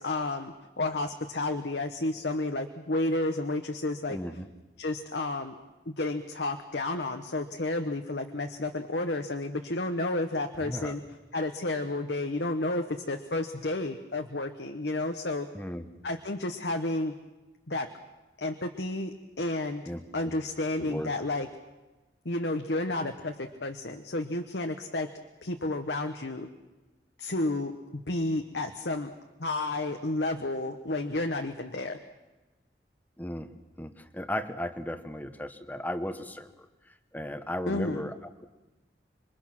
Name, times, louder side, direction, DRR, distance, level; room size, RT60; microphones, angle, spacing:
voice 1, 0.0-4.2 4.8-5.5 5.9-11.0 11.3-15.5 16.0-17.1 17.7-17.9 18.4-19.8 20.1-21.5 22.2-25.1 25.4-26.5 27.2-29.1 29.4-32.0 37.7-38.1, left 2 dB, 75° left, 5 dB, 1.2 m, -31 dB
voice 2, 4.1-4.5 10.6-11.0 15.5-15.9 19.9-20.3 20.8-21.1 33.2-33.5 33.8-38.5, left 1 dB, 10° left, 9 dB, 1.1 m, -36 dB
27.5 x 23.5 x 6.1 m, 1.1 s
head